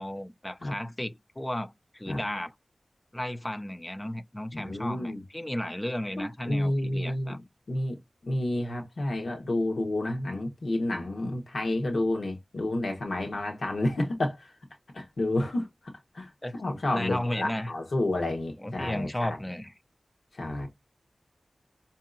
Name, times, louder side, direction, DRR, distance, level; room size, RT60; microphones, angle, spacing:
voice 1, 0.0-2.5 3.1-7.4 16.4-16.5 16.9-17.7 18.6-19.7, left 1 dB, 20° left, 0.4 m, -34 dB
voice 2, 4.5-5.2 6.2-7.4 7.7-14.5 14.9-15.7 16.1-16.3 16.6-19.4 20.3-20.7, left 1 dB, 75° left, 1.1 m, -30 dB
4.7 x 2.7 x 2.5 m
cardioid pair, 50°, 0 cm